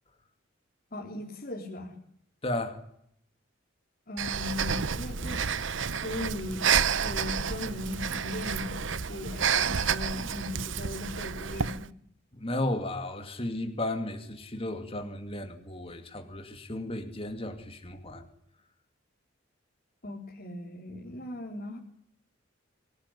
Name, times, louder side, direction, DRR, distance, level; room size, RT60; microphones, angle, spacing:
voice 1, 0.9-1.9 4.1-5.4 6.0-6.7 7.0-11.9 20.0-21.8, left 2 dB, 45° left, -2 dB, 3.9 m, -38 dB
voice 2, 2.4-2.8 12.3-18.2, left 1 dB, 30° left, 6 dB, 2.7 m, -34 dB
Breathing, 4.2-11.8, right 6 dB, 70° right, 0.9 m, -30 dB
24.5 x 18.5 x 10.0 m, 0.71 s
head